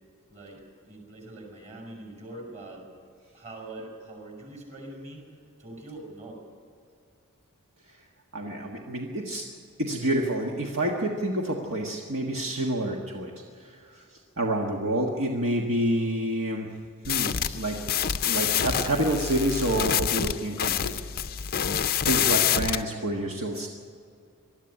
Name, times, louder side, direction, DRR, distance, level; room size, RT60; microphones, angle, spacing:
voice 1, 0.3-2.9 3.3-6.4, right 2 dB, 35° right, 0 dB, 5.5 m, -43 dB
voice 2, 8.3-9.5 9.8-16.7 17.1-21.0 22.0-23.7, right 1 dB, 60° right, 0 dB, 1.6 m, -28 dB
sound 1, 17.0-22.8, left 9 dB, 40° left, 0.6 m, -27 dB
21.0 x 13.0 x 9.9 m, 2.3 s
head